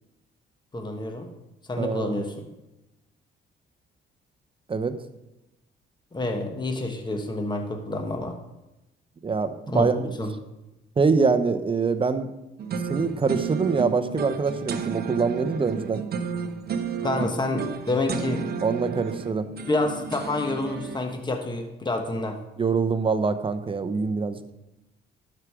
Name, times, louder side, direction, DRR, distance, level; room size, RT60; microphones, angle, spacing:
voice 1, 0.7-1.3 1.7-2.3 6.1-8.4 9.7-10.4 17.0-18.5 19.7-22.4, left 2 dB, 20° left, 4 dB, 1.4 m, -28 dB
voice 2, 1.8-2.2 4.7-4.9 9.2-10.2 11.0-12.3 12.9-16.0 18.6-19.5 22.6-24.5, right 4 dB, 25° right, 10 dB, 0.8 m, -24 dB
sound 1, 12.6-21.0, right 6 dB, 50° right, 0.9 m, -32 dB
12.0 x 5.0 x 4.9 m, 0.96 s
cardioid pair, 90°, 20 cm